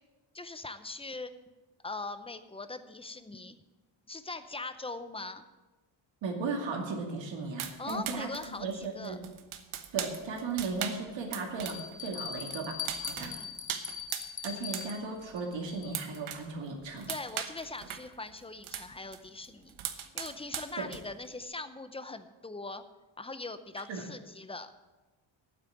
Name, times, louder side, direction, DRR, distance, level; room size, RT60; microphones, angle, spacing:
voice 1, 0.3-1.3 1.8-3.6 4.1-5.5 7.8-9.2 13.2-13.5 17.1-22.8 23.2-24.7, left 3 dB, 10° left, 11 dB, 0.6 m, -41 dB
voice 2, 6.2-9.2 9.9-13.4 14.4-17.1 20.8-20.9 23.9-24.1, right 4 dB, 65° right, 2 dB, 2.4 m, -36 dB
sound 1, 7.6-11.9 12.2-14.9 15.2-16.5 16.8-19.2 19.4-21.3, right 10 dB, 85° right, 1.2 m, -39 dB
Bell, 10.0-10.1 10.8-10.9 11.6-16.2, left 7 dB, 40° left, 1.2 m, -41 dB
9.2 x 8.2 x 9.2 m, 1.2 s
cardioid pair, 140°, 47 cm